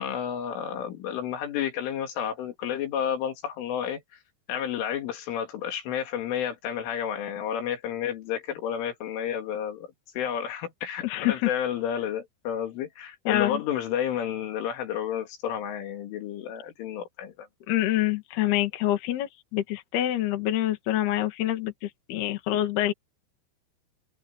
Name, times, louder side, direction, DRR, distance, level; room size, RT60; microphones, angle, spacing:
voice 1, 0.0-4.0 4.5-9.9 10.2-17.5, left 9 dB, 80° left, 5.0 m, -31 dB
voice 2, 11.0-11.5 13.3-13.6 17.7-22.9, left 13 dB, 60° left, 3.7 m, -26 dB
omnidirectional pair, 5.6 m